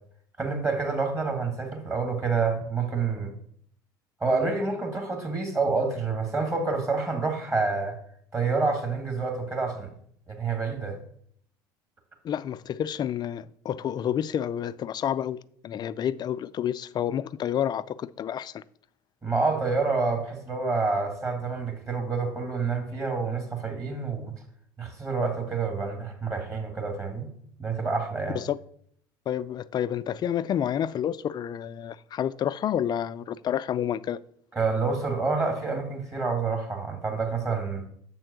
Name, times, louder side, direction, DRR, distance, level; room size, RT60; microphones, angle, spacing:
voice 1, 0.4-3.3 4.2-8.0 8.3-9.9 10.3-11.0 19.2-24.3 24.8-27.3 27.6-28.4 34.5-37.8, right 4 dB, 25° right, 1.9 m, -28 dB
voice 2, 12.2-15.4 15.6-18.6 28.3-28.6 29.3-34.2, left 10 dB, 40° left, 0.4 m, -29 dB
6.9 x 4.4 x 6.7 m
hypercardioid pair, 80°, 11 cm